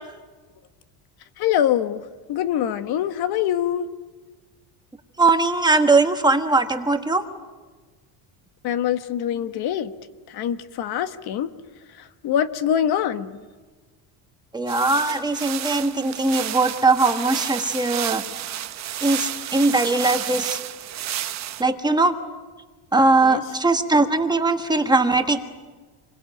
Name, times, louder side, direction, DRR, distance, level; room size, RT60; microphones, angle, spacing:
voice 1, 1.4-2.0 2.3-3.9 8.6-9.9 10.3-11.5 12.2-13.4 23.2-23.4, left 10 dB, 55° left, 11 dB, 1.3 m, -24 dB
voice 2, 5.2-7.2 14.5-18.2 19.0-20.6 21.6-22.1 22.9-25.4, right 3 dB, 10° right, 5 dB, 1.4 m, -20 dB
sound 1, 14.7-21.6, right 12 dB, 35° right, 1.0 m, -31 dB
27.5 x 22.0 x 9.1 m, 1.4 s
cardioid pair, 165°, 47 cm